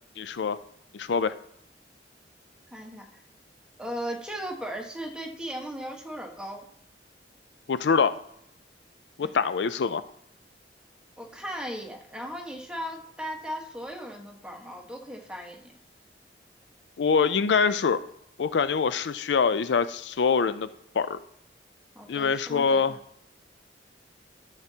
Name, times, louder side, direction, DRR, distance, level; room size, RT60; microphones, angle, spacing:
voice 1, 0.2-0.6 0.9-1.3 7.7-8.1 9.2-10.0 17.0-18.0 18.4-20.7 20.9-21.2 22.1-23.0, left 5 dB, 75° left, 13 dB, 0.4 m, -24 dB
voice 2, 2.7-3.0 3.8-6.7 9.2-9.4 11.2-15.7 21.9-23.0, equal, 5° right, 0 dB, 1.3 m, -37 dB
13.0 x 7.4 x 2.8 m, 0.76 s
head